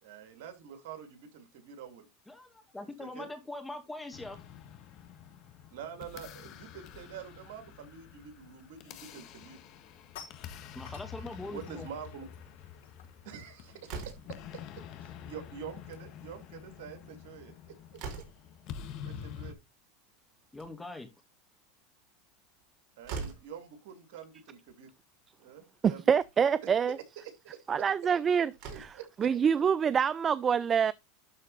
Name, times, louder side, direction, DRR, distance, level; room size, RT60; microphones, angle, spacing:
voice 1, 0.0-2.1 3.0-3.3 5.7-9.6 11.4-12.3 13.2-18.2 19.0-19.6 23.0-24.9 25.4-26.0 27.2-27.8 28.7-29.3, right 8 dB, 75° right, 2.4 m, -46 dB
voice 2, 2.3-4.4 10.7-11.9 20.5-21.1, left 2 dB, 10° left, 2.2 m, -42 dB
sound 1, 4.1-19.5, left 8 dB, 50° left, 1.5 m, -47 dB
sound 2, 9.8-15.3 15.6-15.8 16.1-21.1, left 8 dB, 75° left, 5.1 m, -57 dB
Slam, 13.8-14.5 15.7-16.1 16.4-16.5 16.8-16.9 17.4-18.6 20.3-21.0 22.6-22.7 23.0-23.6 24.7-24.8 25.2-25.3 26.1-26.3 28.0-28.1 28.5-29.1, right 5 dB, 55° right, 4.1 m, -42 dB
voice 3, 25.8-27.0 27.7-28.5 28.8-28.9 29.2-30.9, right 7 dB, 30° right, 0.4 m, -26 dB
12.0 x 4.2 x 3.9 m
supercardioid pair, 115°, 0 cm